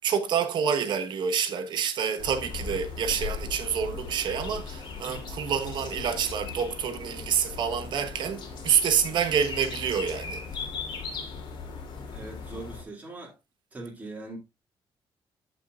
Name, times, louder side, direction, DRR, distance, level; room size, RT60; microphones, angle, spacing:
voice 1, 0.0-10.4, right 7 dB, 55° right, 1.2 m, -27 dB
sound 1, 2.2-12.8, left 5 dB, 55° left, 3.1 m, -38 dB
voice 2, 12.0-13.4 13.7-14.4, right 2 dB, 15° right, 2.5 m, -41 dB
14.0 x 5.7 x 2.4 m
cardioid pair, 175°, 9 cm